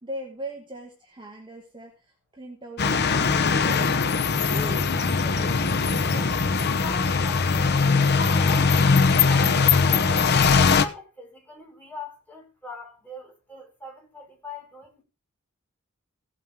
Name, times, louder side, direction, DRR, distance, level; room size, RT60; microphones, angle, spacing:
voice 1, 0.0-3.3 3.6-4.2 4.4-5.6, right 1 dB, 25° right, 2.2 m, -40 dB
sound 1, 2.8-10.8, left 5 dB, 55° left, 0.9 m, -21 dB
voice 2, 6.0-10.2 10.6-15.0, left 2 dB, 10° left, 5.2 m, -42 dB
17.0 x 8.8 x 3.7 m
head